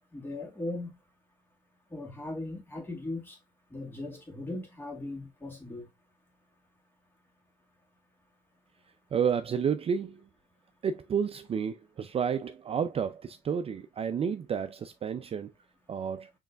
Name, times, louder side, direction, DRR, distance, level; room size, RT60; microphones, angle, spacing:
voice 1, 0.1-0.9 1.9-3.4 3.7-5.9, left 2 dB, 10° left, 2.0 m, -38 dB
voice 2, 9.1-10.2 10.8-15.5 15.9-16.3, right 7 dB, 35° right, 0.5 m, -31 dB
6.8 x 3.2 x 2.4 m
cardioid pair, 110°, 17 cm